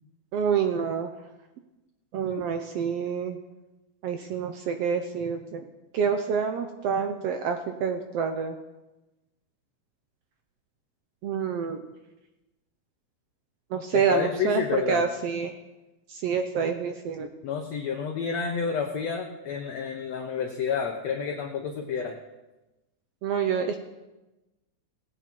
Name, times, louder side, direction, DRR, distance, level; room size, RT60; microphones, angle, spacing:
voice 1, 0.3-1.1 2.1-3.4 4.0-5.6 5.9-8.6 11.2-11.8 13.7-14.6 14.9-15.6 16.1-17.3 23.2-23.8, right 6 dB, 80° right, 6 dB, 1.4 m, -27 dB
voice 2, 13.9-15.0 17.4-22.2, left 6 dB, 65° left, 2 dB, 1.9 m, -29 dB
18.0 x 9.4 x 4.5 m, 1.0 s
omnidirectional pair, 3.7 m